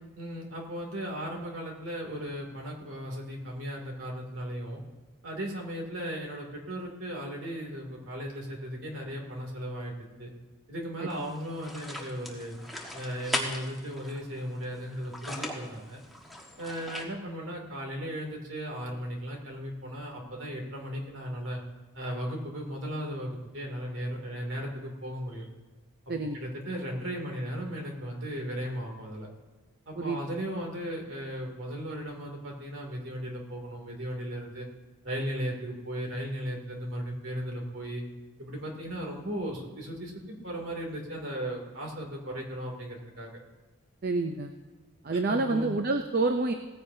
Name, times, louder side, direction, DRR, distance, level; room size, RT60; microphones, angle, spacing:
voice 1, 0.2-4.8 5.2-9.9 10.2-10.3 10.7-12.6 12.9-16.0 16.6-21.6 21.9-25.5 26.3-29.3 29.9-34.7 35.0-38.0 38.4-43.3 45.3-45.7, equal, 60° right, 0 dB, 2.7 m, -36 dB
sound 1, 11.1-17.0, left 1 dB, ahead, 1.4 m, -39 dB
voice 2, 44.0-44.5 45.0-46.5, right 3 dB, 45° right, 5 dB, 0.6 m, -28 dB
18.0 x 15.0 x 2.8 m, 1.2 s
head